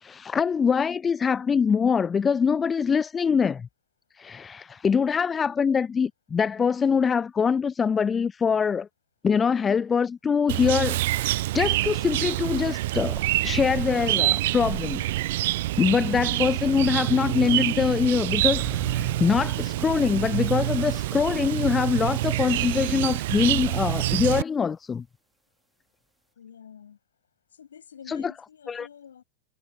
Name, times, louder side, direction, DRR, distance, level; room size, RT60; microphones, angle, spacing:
voice 1, 0.0-3.7 4.2-8.9 9.2-15.0 15.3-15.4 15.8-18.6 18.9-25.0 28.1-28.3 28.7-28.9, left 6 dB, 20° left, 0.4 m, -24 dB
Chirp tweet, 10.5-24.4, right 17 dB, 55° right, 0.4 m, -26 dB
sound 1, 18.3-21.5 21.9-23.1, right 2 dB, 5° right, 1.5 m, -42 dB
voice 2, 26.4-27.0 27.5-29.2, left 8 dB, 65° left, 7.0 m, -47 dB
figure-of-eight pair, 90°, 0 cm